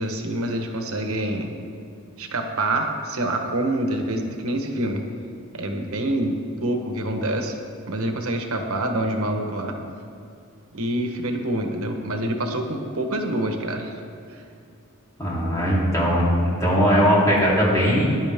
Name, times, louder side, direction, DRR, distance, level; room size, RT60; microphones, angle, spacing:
voice 1, 0.0-1.5 2.2-5.1 5.5-7.6 7.9-9.7 10.7-13.9 14.3-14.4, right 1 dB, 80° right, 4 dB, 1.2 m, -26 dB
voice 2, 15.2-18.1, equal, 15° left, -7 dB, 3.4 m, -19 dB
18.0 x 10.5 x 3.6 m, 2.6 s
head